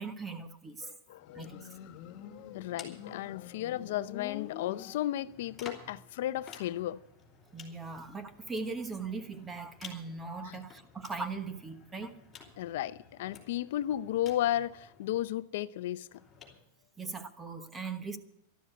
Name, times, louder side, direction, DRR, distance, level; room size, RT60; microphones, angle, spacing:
voice 1, 0.0-0.9 1.3-1.7 7.5-12.1 17.0-18.2, right 4 dB, 15° right, 1.1 m, -39 dB
voice 2, 0.8-1.5 2.5-7.0 10.4-10.6 12.6-16.1, left 13 dB, 65° left, 0.5 m, -34 dB
sound 1, 1.1-4.3 5.2-15.2 16.1-16.6, left 6 dB, 15° left, 3.1 m, -54 dB
Motorcycle, 1.2-5.6, left 11 dB, 40° left, 1.2 m, -47 dB
13.0 x 12.5 x 6.6 m
supercardioid pair, 155°, 0 cm